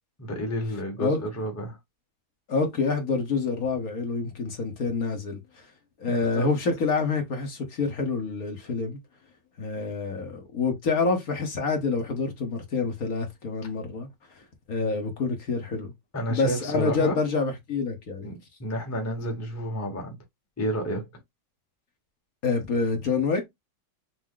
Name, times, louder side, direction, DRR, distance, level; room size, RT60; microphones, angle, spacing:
voice 1, 0.2-1.8 6.0-6.5 16.1-17.2 18.2-20.2 20.6-21.1, equal, 10° left, 1.0 m, -30 dB
voice 2, 2.5-5.7 6.0-9.0 9.6-14.1 14.7-15.9 16.3-18.3 22.4-23.5, left 4 dB, 55° left, 1.5 m, -27 dB
6.1 x 2.1 x 3.8 m
omnidirectional pair, 1.9 m